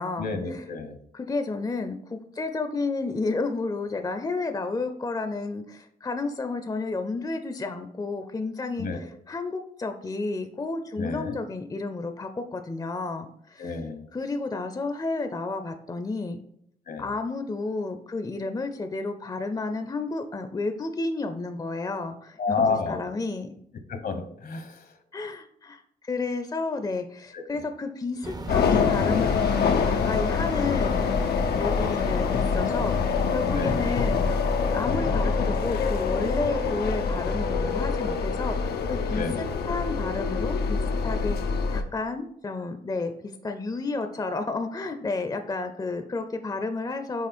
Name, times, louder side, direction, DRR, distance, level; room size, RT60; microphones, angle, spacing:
voice 1, 0.2-1.0 8.8-9.0 11.0-11.3 13.6-14.1 16.9-17.1 22.4-23.0 23.9-25.0 27.3-27.4 31.6-31.9 33.5-33.8 39.1-39.4, left 4 dB, 65° left, 7 dB, 1.0 m, -30 dB
voice 2, 1.1-8.9 9.3-13.7 14.1-16.4 17.0-23.5 25.1-31.0 31.6-34.3 34.7-47.3, left 3 dB, 25° left, 7 dB, 0.5 m, -31 dB
sound 1, 28.2-34.9, right 3 dB, 25° right, 0.6 m, -40 dB
sound 2, 28.5-41.8, left 5 dB, 80° left, 0.6 m, -25 dB
6.1 x 3.7 x 4.3 m, 0.70 s
cardioid pair, 65°, 16 cm